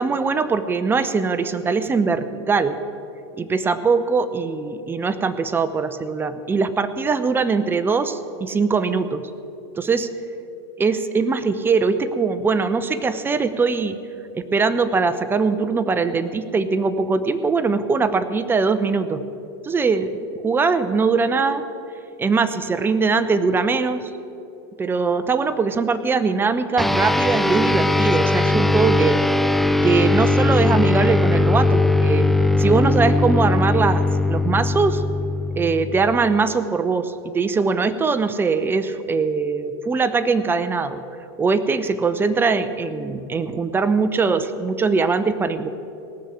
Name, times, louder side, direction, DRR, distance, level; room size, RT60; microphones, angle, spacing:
voice 1, 0.0-2.8 3.4-9.3 9.8-10.1 10.8-14.0 14.3-19.2 19.6-20.1 20.4-21.6 22.2-24.1 24.8-29.2 29.8-32.3 32.6-35.0 35.6-41.0 41.4-45.8, right 4 dB, 15° right, 11 dB, 0.8 m, -21 dB
sound 1, 26.8-36.5, left 2 dB, ahead, 0.3 m, -19 dB
18.0 x 6.4 x 8.5 m, 2.7 s
supercardioid pair, 120°, 13 cm